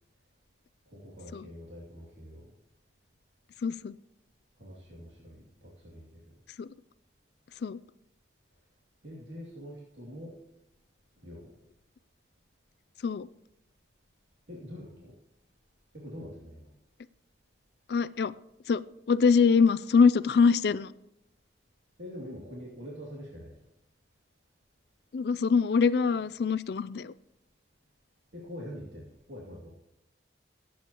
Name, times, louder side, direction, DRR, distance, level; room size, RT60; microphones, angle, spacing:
voice 1, 0.9-2.5 4.6-6.3 9.0-10.3 11.2-11.6 14.5-15.1 15.9-16.7 22.0-23.5 28.3-29.7, equal, 80° right, -5 dB, 2.6 m, -44 dB
voice 2, 3.6-3.9 6.6-6.7 7.6-7.8 13.0-13.3 17.9-18.3 18.7-18.8 19.1-20.9 25.1-27.1, left 5 dB, 60° left, 17 dB, 0.4 m, -24 dB
19.0 x 8.6 x 3.0 m, 0.85 s
head